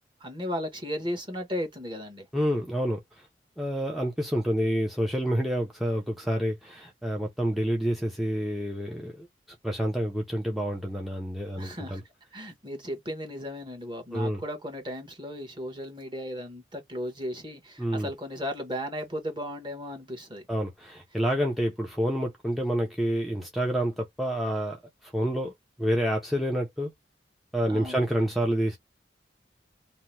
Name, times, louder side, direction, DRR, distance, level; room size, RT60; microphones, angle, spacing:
voice 1, 0.2-2.3 11.6-12.0 12.3-20.4 27.7-28.0, equal, 25° right, 1.0 m, -35 dB
voice 2, 2.3-3.3 3.6-9.3 9.6-12.0 14.1-14.4 17.8-18.1 20.5-25.5 25.8-26.9 27.5-28.8, equal, ahead, 0.4 m, -28 dB
2.8 x 2.0 x 3.1 m
head